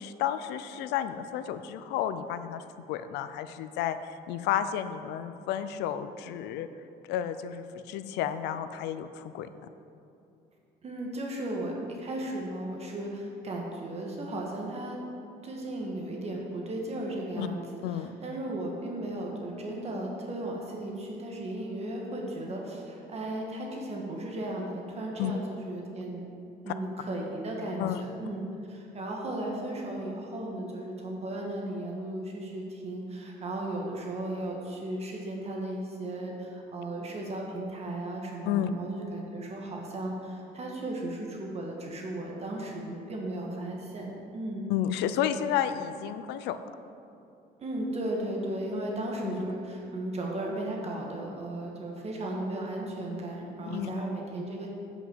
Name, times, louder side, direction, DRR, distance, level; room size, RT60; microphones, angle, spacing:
voice 1, 0.0-4.0 4.3-6.7 7.1-9.5 17.4-17.5 17.8-18.1 25.2-25.3 26.7-26.8 27.8-28.0 38.5-38.7 44.7-46.6 49.2-49.3 53.7-54.0, left 10 dB, 90° left, 11 dB, 0.5 m, -31 dB
voice 2, 10.8-15.0 15.4-17.6 17.9-26.2 26.6-44.7 47.6-54.7, right 1 dB, 40° right, -1 dB, 1.6 m, -35 dB
8.1 x 6.0 x 7.6 m, 2.7 s
cardioid pair, 110°, 17 cm